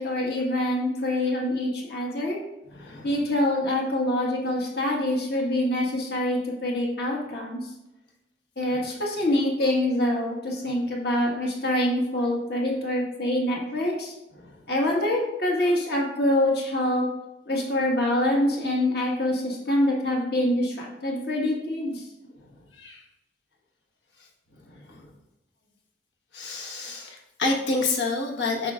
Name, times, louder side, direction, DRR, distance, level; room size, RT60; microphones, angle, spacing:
voice 1, 0.0-2.4 3.0-7.6 8.6-14.1 14.7-17.1 17.5-22.0, left 1 dB, 60° left, -2 dB, 1.7 m, -25 dB
voice 2, 2.7-3.1 8.7-8.9 14.4-14.6 22.7-23.0 24.7-25.1 26.3-28.7, left 3 dB, 75° left, 0 dB, 1.3 m, -29 dB
7.9 x 6.1 x 2.5 m, 0.94 s
head